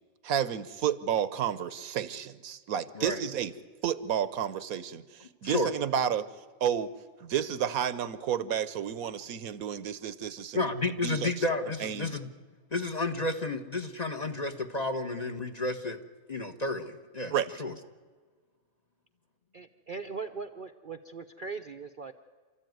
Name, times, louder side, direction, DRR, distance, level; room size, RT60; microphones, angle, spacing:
voice 1, 0.2-3.5 3.8-6.3 6.6-6.9 7.2-10.7 11.0-11.3 11.8-12.1 17.3-17.5, right 9 dB, 75° right, 15 dB, 1.3 m, -31 dB
voice 2, 10.5-12.3 12.7-16.0 16.3-17.3 17.6-17.7, left 2 dB, 30° left, 6 dB, 1.1 m, -31 dB
voice 3, 19.5-22.1, right 4 dB, 45° right, 6 dB, 0.7 m, -40 dB
28.5 x 13.5 x 9.3 m, 1.5 s
omnidirectional pair, 1.5 m